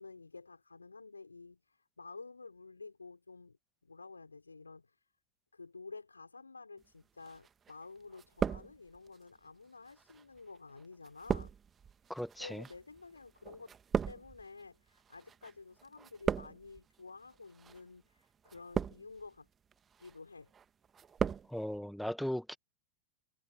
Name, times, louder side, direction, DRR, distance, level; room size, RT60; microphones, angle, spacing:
voice 1, 0.0-3.6 3.8-5.0 5.5-11.5 12.4-13.7 14.1-19.5 20.0-20.5, left 4 dB, 80° left, 5.9 m, -51 dB
sound 1, 7.3-7.8 8.1-9.2 9.9-15.5 15.8-16.8 17.5-17.8 18.5-19.3 19.7-20.2 20.5-21.5 21.7-21.8, right 7 dB, 20° right, 1.9 m, -37 dB
voice 2, 12.1-12.7 21.5-22.6, equal, ahead, 2.1 m, -37 dB
figure-of-eight pair, 90°, 0 cm